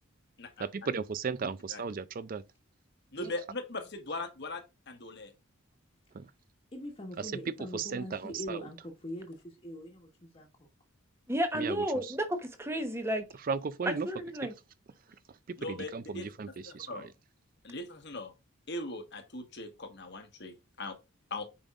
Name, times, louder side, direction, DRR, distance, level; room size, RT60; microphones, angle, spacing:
voice 1, 0.6-2.4 6.1-6.3 7.2-7.4 7.7-8.7 11.5-12.2 13.4-14.1 14.4-14.5 15.3-17.1, right 5 dB, 40° right, 0.4 m, -36 dB
voice 2, 3.1-5.3 15.6-16.3 16.6-17.1 17.6-18.3 18.7-21.0 21.3-21.5, left 2 dB, 55° left, 1.3 m, -40 dB
voice 3, 6.7-8.8 9.0-10.5, equal, 25° left, 1.4 m, -42 dB
voice 4, 11.3-13.2 13.9-14.5, equal, 10° right, 1.0 m, -32 dB
8.6 x 5.3 x 2.5 m
head